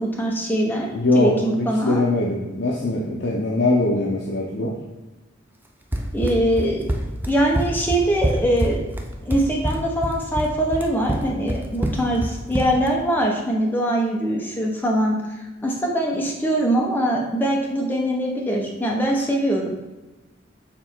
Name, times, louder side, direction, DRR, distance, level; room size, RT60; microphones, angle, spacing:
voice 1, 0.0-2.1 6.1-6.9 7.3-8.8 9.2-15.2 15.6-19.7, right 1 dB, 10° left, -2 dB, 0.9 m, -22 dB
voice 2, 0.9-4.7, left 2 dB, 60° left, -2 dB, 0.7 m, -22 dB
Run, 5.9-12.9, equal, 10° right, 0.4 m, -26 dB
6.8 x 3.3 x 4.5 m, 1.1 s
head